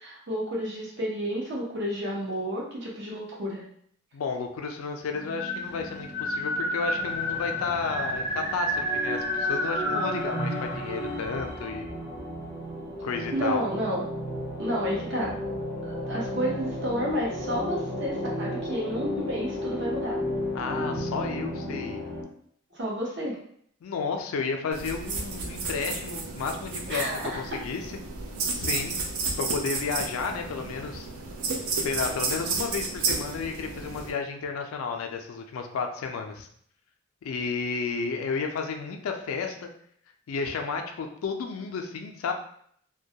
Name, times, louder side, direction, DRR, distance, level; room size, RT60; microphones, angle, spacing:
voice 1, 0.0-3.6 13.3-14.0 14.6-15.4 15.9-20.3 22.7-23.4 26.9-27.3, equal, 55° right, -3 dB, 0.7 m, -31 dB
voice 2, 4.1-11.9 13.0-13.7 20.5-22.0 23.8-28.0 28.6-29.0 29.4-31.1 31.8-36.5 37.2-39.7 40.3-42.3, left 5 dB, 80° left, 4 dB, 0.4 m, -32 dB
sound 1, 5.1-22.2, left 1 dB, 15° right, 0.5 m, -32 dB
sound 2, 24.7-34.1, right 4 dB, 90° right, 0.4 m, -32 dB
2.2 x 2.1 x 2.7 m, 0.65 s
head